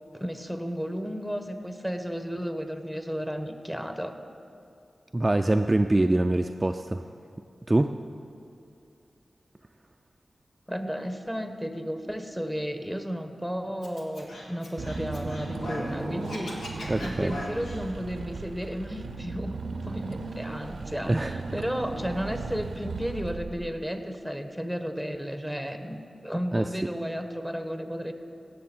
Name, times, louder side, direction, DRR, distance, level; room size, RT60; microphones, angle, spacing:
voice 1, 0.2-4.2 10.7-28.1, equal, 5° left, 7 dB, 1.0 m, -33 dB
voice 2, 5.1-7.0 7.7-7.9 16.9-17.3 21.1-21.3 26.5-26.7, right 2 dB, 30° right, 6 dB, 0.3 m, -24 dB
Scratching (performance technique), 13.8-15.9 16.2-17.8, left 1 dB, 90° left, 1.5 m, -39 dB
Car / Engine, 14.8-23.9, right 3 dB, 80° right, 0.5 m, -36 dB
16.5 x 6.7 x 4.4 m, 2.6 s
cardioid pair, 50°, 0 cm